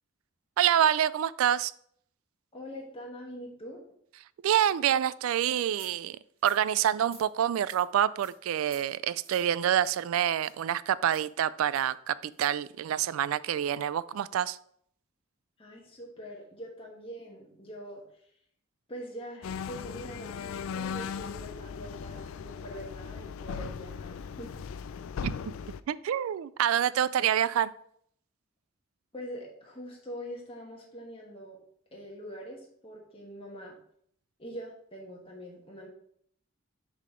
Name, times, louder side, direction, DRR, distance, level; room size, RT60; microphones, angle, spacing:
voice 1, 0.6-1.7 4.4-6.2 6.4-14.6 25.2-25.5 25.9-27.7, right 10 dB, 80° right, 19 dB, 0.3 m, -27 dB
voice 2, 2.5-3.8 15.6-18.3 18.9-24.5 29.1-31.6 31.9-33.8 34.4-35.9, equal, 25° left, -2 dB, 1.2 m, -43 dB
sound 1, 5.7-5.9 6.4-6.6 7.0-7.2 7.7-7.8 8.2-8.3 8.6-8.8 9.2-9.5 9.8-10.0 10.4-10.5 11.1-11.3 11.7-11.9 12.3-12.5, right 3 dB, 30° right, 1.9 m, -51 dB
sound 2, 19.4-25.8, left 6 dB, 75° left, 0.3 m, -38 dB
6.6 x 3.7 x 5.0 m, 0.65 s
head